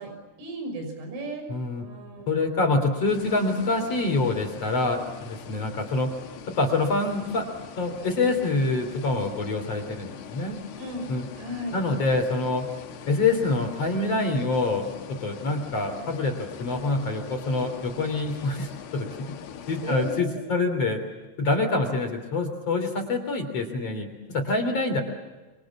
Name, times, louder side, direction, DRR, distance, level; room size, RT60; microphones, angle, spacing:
voice 1, 0.0-1.5 1.8-2.3 10.8-11.1 11.4-11.8 19.8-20.4, right 1 dB, 75° right, 5 dB, 8.3 m, -35 dB
voice 2, 1.5-1.8 2.3-6.1 6.6-7.5 7.8-10.6 11.1-11.2 11.7-12.7 13.1-19.3 19.7-21.0 21.4-24.1 24.3-25.0, left 3 dB, 35° left, 5 dB, 3.7 m, -26 dB
sound 1, 3.1-20.2, left 8 dB, 65° left, 3.3 m, -43 dB
27.5 x 26.5 x 7.3 m, 1.2 s
omnidirectional pair, 5.6 m